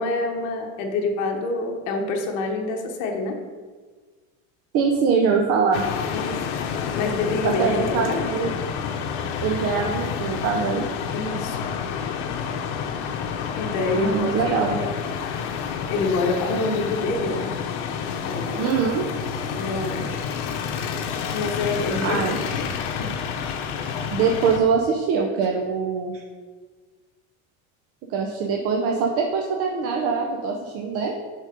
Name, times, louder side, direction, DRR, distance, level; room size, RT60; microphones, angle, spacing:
voice 1, 0.0-3.4 6.1-6.4 6.9-8.3 11.1-11.6 13.5-14.3 14.7-14.9 15.9-17.5 18.2-18.7 19.6-20.3 21.3-22.2 22.6-23.1, left 3 dB, 60° left, 2 dB, 1.2 m, -27 dB
voice 2, 4.7-5.9 7.4-8.5 9.4-10.8 13.9-14.8 18.6-19.0 22.0-22.4 24.1-26.2 28.1-31.1, right 5 dB, 45° right, 1 dB, 0.7 m, -23 dB
sound 1, 5.7-24.6, left 7 dB, 85° left, 0.8 m, -29 dB
7.2 x 4.1 x 5.1 m, 1.4 s
cardioid pair, 160°, 34 cm